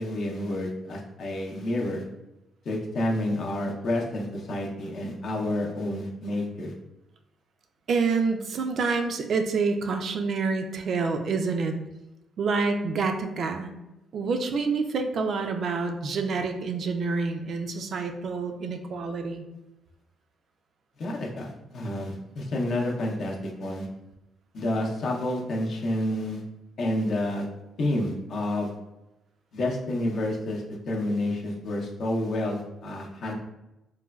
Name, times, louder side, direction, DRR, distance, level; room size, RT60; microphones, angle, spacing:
voice 1, 0.0-2.0 2.6-6.7 21.0-23.9 24.5-26.4 26.8-27.5 27.8-28.7 29.5-33.3, left 1 dB, 60° left, -1 dB, 0.6 m, -29 dB
voice 2, 7.9-11.7 12.4-13.7 14.1-19.4, right 4 dB, 60° right, 6 dB, 0.3 m, -27 dB
3.1 x 2.2 x 2.3 m, 0.95 s
cardioid pair, 90°, 0 cm